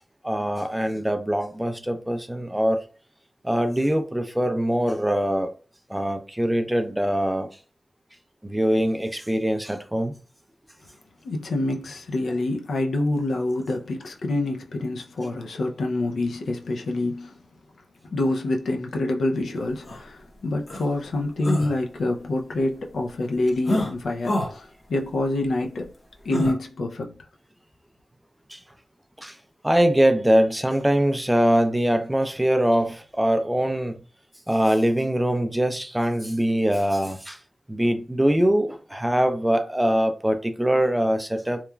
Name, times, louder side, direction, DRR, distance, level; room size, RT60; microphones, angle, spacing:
voice 1, 0.2-2.8 3.4-5.5 5.9-7.5 8.4-10.1 28.5-28.6 29.2-29.3 29.6-34.0 34.5-37.4 37.7-41.6, equal, 10° right, 0.3 m, -23 dB
voice 2, 11.2-17.3 18.0-25.9 26.2-27.2, left 2 dB, 85° left, 0.4 m, -26 dB
sound 1, 19.9-20.0 20.7-20.8 21.4-21.7 23.7-23.9 24.2-24.5 26.3-26.5, left 1 dB, 40° left, 0.8 m, -26 dB
3.0 x 2.3 x 2.2 m
wide cardioid pair, 105°, 0 cm